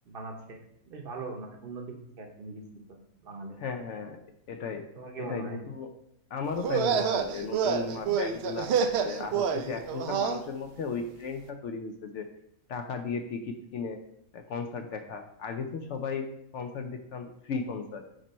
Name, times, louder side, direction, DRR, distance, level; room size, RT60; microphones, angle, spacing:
voice 1, 0.1-0.6 0.8-2.6 3.2-3.6 4.9-5.6, right 3 dB, 45° right, 3 dB, 0.9 m, -40 dB
voice 2, 3.6-4.2 4.5-4.8 5.2-5.9 6.3-8.7 9.0-12.3 12.7-14.0 14.3-16.3 16.5-18.0, left 5 dB, 65° left, 6 dB, 0.8 m, -35 dB
sound 1, 6.6-10.4, right 6 dB, 65° right, 0.6 m, -28 dB
5.2 x 4.4 x 4.2 m, 0.74 s
omnidirectional pair, 1.5 m